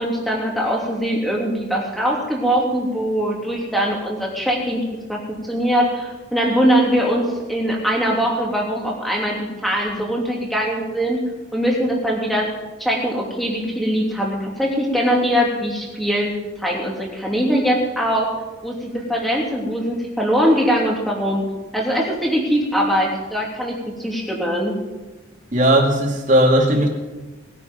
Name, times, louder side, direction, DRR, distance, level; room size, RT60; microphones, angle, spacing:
voice 1, 0.0-4.8 5.1-5.2 5.5-11.2 11.5-12.5 12.8-18.3 18.6-21.4 21.7-24.7, equal, ahead, -2 dB, 2.9 m, -21 dB
voice 2, 25.5-26.9, right 1 dB, 40° right, 0 dB, 2.6 m, -16 dB
20.0 x 10.0 x 5.5 m, 1.2 s
head